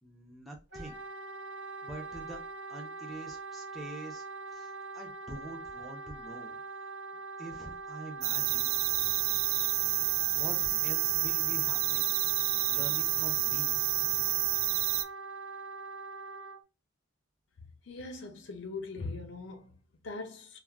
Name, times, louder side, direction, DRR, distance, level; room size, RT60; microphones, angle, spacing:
voice 1, 0.0-1.0 1.8-2.4 2.7-4.2 4.5-6.9 7.4-8.7 10.3-12.1 12.7-13.7, right 2 dB, ahead, 0.5 m, -45 dB
Wind instrument woodwind instrument, 0.7-16.6, right 3 dB, 55° right, 0.8 m, -43 dB
sound 1, 8.2-15.0, right 13 dB, 85° right, 0.3 m, -29 dB
voice 2, 17.9-20.6, left 3 dB, 60° left, 0.6 m, -41 dB
2.3 x 2.2 x 3.3 m
head